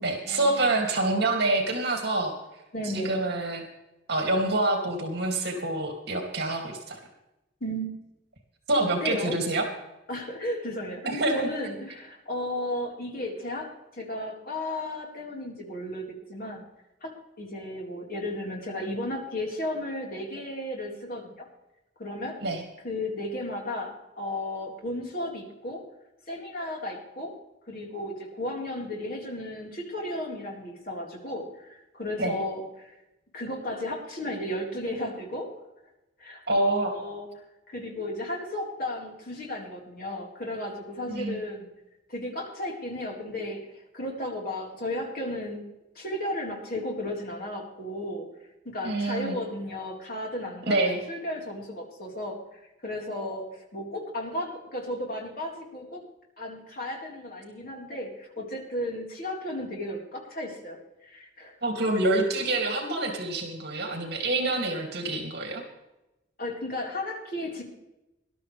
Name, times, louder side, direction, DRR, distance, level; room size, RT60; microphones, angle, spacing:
voice 1, 0.0-2.3 2.8-3.6 4.1-7.0 8.7-9.6 11.1-11.5 22.4-22.6 32.2-32.4 36.5-36.9 41.1-41.4 48.8-49.4 50.7-51.0 61.6-65.6, right 2 dB, 60° right, 2 dB, 2.5 m, -26 dB
voice 2, 2.7-3.2 7.6-7.9 8.8-9.4 10.1-16.6 17.0-21.5 22.0-22.4 22.8-25.8 26.3-27.3 27.7-32.9 33.3-35.5 36.2-37.3 37.7-41.7 42.1-43.6 43.9-45.7 45.9-48.3 48.6-56.0 56.4-60.8 61.0-61.5 66.4-67.6, left 1 dB, 55° left, -1 dB, 4.1 m, -34 dB
20.5 x 12.0 x 3.3 m, 0.94 s
head